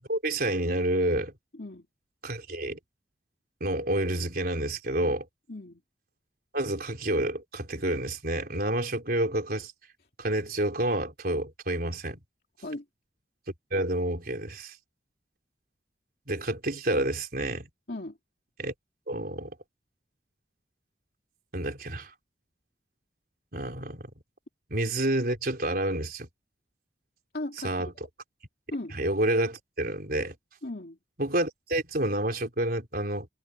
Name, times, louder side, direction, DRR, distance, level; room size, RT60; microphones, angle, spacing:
voice 1, 0.0-1.3 2.2-2.8 3.6-5.3 6.5-9.7 10.2-12.2 13.7-14.8 16.3-17.7 18.6-18.7 19.1-19.5 21.5-22.1 23.5-24.0 24.7-26.3 27.6-27.9 28.9-30.4 31.2-33.3, right 1 dB, 55° right, 4.3 m, -29 dB
voice 2, 1.5-1.9 5.5-5.8 12.6-12.8 17.9-18.2 27.3-27.7 28.7-28.9 30.6-31.0, left 1 dB, 55° left, 2.7 m, -36 dB
head